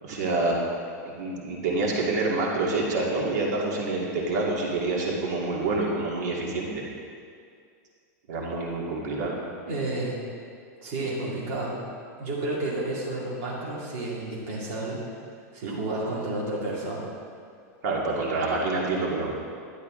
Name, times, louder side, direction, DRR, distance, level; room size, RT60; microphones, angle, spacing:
voice 1, 0.0-0.6 1.0-6.8 8.3-9.4 15.6-15.8 17.8-19.3, right 3 dB, 85° right, -3 dB, 2.0 m, -27 dB
voice 2, 9.7-10.2 10.8-11.8 12.2-15.0 15.5-17.1, right 2 dB, 45° right, -6 dB, 2.3 m, -31 dB
12.0 x 11.0 x 3.7 m, 2.3 s
supercardioid pair, 170°, 9 cm